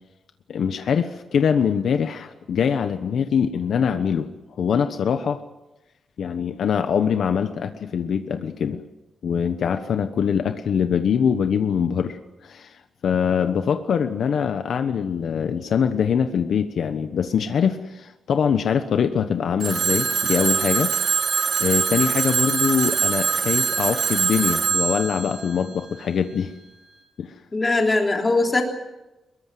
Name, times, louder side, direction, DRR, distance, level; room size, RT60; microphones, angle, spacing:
voice 1, 0.5-4.3 4.6-5.4 6.2-8.8 9.2-20.9 21.6-26.5 27.2-27.3, left 7 dB, 65° left, 8 dB, 1.1 m, -23 dB
Telephone, 19.6-26.4, right 6 dB, 70° right, 4.1 m, -23 dB
voice 2, 27.5-28.6, left 2 dB, 20° left, 2 dB, 3.4 m, -21 dB
24.5 x 22.0 x 7.7 m, 1.0 s
wide cardioid pair, 170°, 0 cm